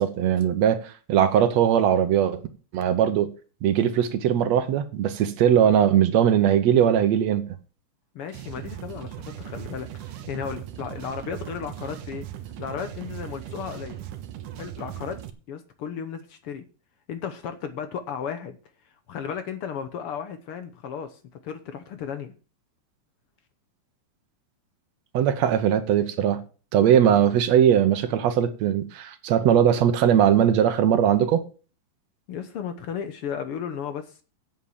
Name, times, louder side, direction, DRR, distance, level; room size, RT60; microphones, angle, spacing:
voice 1, 0.0-2.4 2.7-3.3 3.6-7.5 25.1-26.4 26.7-31.4, right 9 dB, 65° right, 2.0 m, -20 dB
voice 2, 8.1-12.3 12.6-14.0 14.6-15.2 15.5-16.6 17.1-18.6 19.1-22.3 32.3-34.2, left 7 dB, 65° left, 1.5 m, -34 dB
sound 1, 8.3-15.3, right 12 dB, 85° right, 2.5 m, -38 dB
8.0 x 7.7 x 7.3 m
omnidirectional pair, 3.6 m